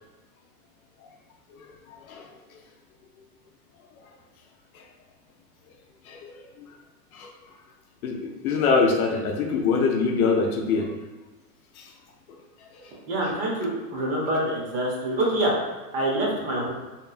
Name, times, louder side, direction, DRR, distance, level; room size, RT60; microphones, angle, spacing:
voice 1, 8.0-10.9 11.8-11.9, left 4 dB, 65° left, 2 dB, 0.5 m, -23 dB
voice 2, 13.1-15.5 15.9-16.7, right 1 dB, 40° right, -3 dB, 0.7 m, -26 dB
2.8 x 2.2 x 2.3 m, 1.2 s
hypercardioid pair, 145°, 48 cm